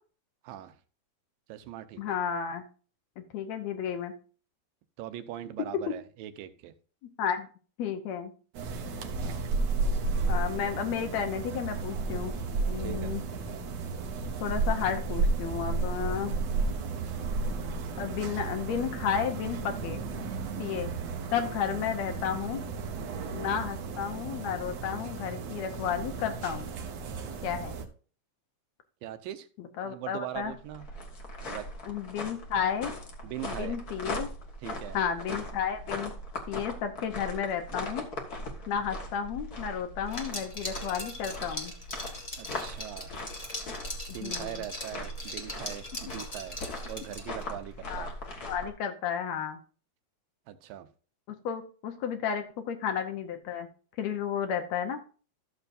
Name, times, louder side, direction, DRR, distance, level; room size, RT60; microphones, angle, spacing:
voice 1, 0.4-0.8 1.5-2.2 5.0-6.7 9.2-9.4 12.8-13.2 29.0-29.5 29.8-30.9 31.5-31.7 33.2-33.8 34.6-35.0 42.4-43.1 44.1-46.6 46.9-48.1 50.5-50.9, right 12 dB, 80° right, 11 dB, 2.4 m, -41 dB
voice 2, 2.0-2.6 3.2-4.1 7.2-7.5 7.8-8.3 10.3-12.3 12.7-13.2 14.4-16.4 18.0-20.0 20.6-20.9 21.3-22.6 23.3-26.7 27.4-27.8 29.6-30.5 31.9-33.0 33.5-34.3 34.9-36.1 36.5-38.1 38.7-41.7 44.2-44.6 47.9-48.1 48.4-49.6 51.4-53.7 54.0-55.0, left 8 dB, 75° left, 7 dB, 1.7 m, -32 dB
sound 1, 8.5-27.9, right 3 dB, 65° right, 1.8 m, -33 dB
sound 2, 30.3-48.7, left 1 dB, 50° left, 1.0 m, -40 dB
Liquid, 40.1-47.5, left 1 dB, 25° left, 0.8 m, -40 dB
14.0 x 7.1 x 2.6 m, 0.38 s
omnidirectional pair, 4.1 m